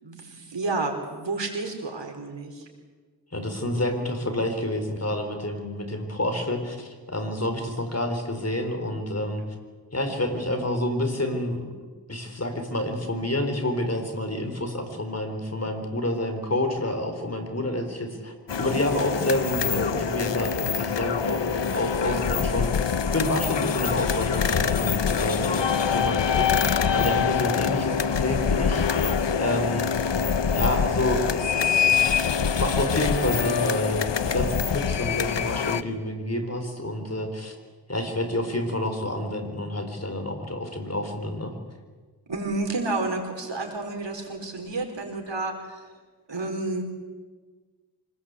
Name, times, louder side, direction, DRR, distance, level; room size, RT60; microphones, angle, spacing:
voice 1, 0.0-2.7 42.3-45.9 46.3-46.8, right 2 dB, 80° right, 3 dB, 4.6 m, -30 dB
voice 2, 3.3-9.4 9.9-11.6 12.1-26.5 26.9-32.2 32.6-37.5 37.9-41.5, left 1 dB, 35° left, 5 dB, 4.4 m, -29 dB
sound 1, 18.5-35.8, left 6 dB, 80° left, 1.0 m, -25 dB
25.5 x 20.0 x 8.4 m, 1.4 s
wide cardioid pair, 60°, 43 cm